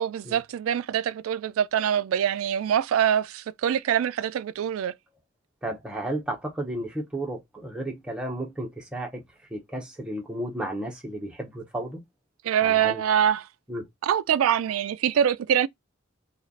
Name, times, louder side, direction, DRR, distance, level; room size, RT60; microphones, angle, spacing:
voice 1, 0.0-4.9 12.4-13.5 14.0-15.7, right 9 dB, 90° right, 0.3 m, -24 dB
voice 2, 5.6-9.2 9.5-12.0 12.6-13.0 13.7-13.8, right 1 dB, 5° right, 1.0 m, -33 dB
3.2 x 2.4 x 3.8 m
head